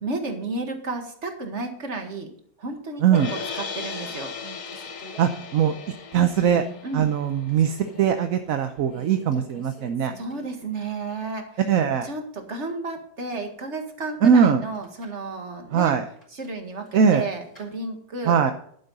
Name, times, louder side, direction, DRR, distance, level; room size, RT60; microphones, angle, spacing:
voice 1, 0.0-2.3 2.6-4.3 4.7-5.2 6.8-7.1 10.2-11.6 12.0-15.9 16.3-18.4, right 3 dB, 40° right, 5 dB, 2.0 m, -32 dB
sound 1, 3.1-9.3, left 5 dB, 50° left, 1.7 m, -37 dB
sound 2, 3.5-3.6 3.9-6.0 6.5-6.8 7.2-8.2 8.9-10.7 11.0-11.1 14.6-15.3 16.2-17.7, right 1 dB, 30° left, 5.0 m, -46 dB
voice 2, 5.2-5.7 6.1-6.6 6.9-10.1 11.7-12.1 14.2-14.6 15.7-16.0 16.9-17.2 18.3-18.5, right 7 dB, 60° right, 7 dB, 1.0 m, -20 dB
11.5 x 9.5 x 4.1 m, 0.63 s
omnidirectional pair, 1.9 m